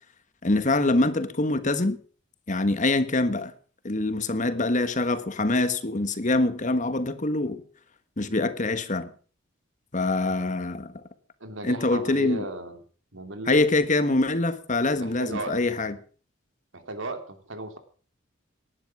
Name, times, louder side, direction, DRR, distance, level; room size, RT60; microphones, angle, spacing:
voice 1, 0.4-2.0 2.5-3.5 3.8-7.6 8.2-9.1 9.9-10.9 11.6-12.4 13.5-16.0, left 2 dB, 40° left, 1.4 m, -24 dB
voice 2, 11.4-12.8 13.1-13.6 14.9-15.6 16.7-17.8, right 2 dB, 70° right, 3.0 m, -35 dB
18.5 x 11.0 x 6.1 m
head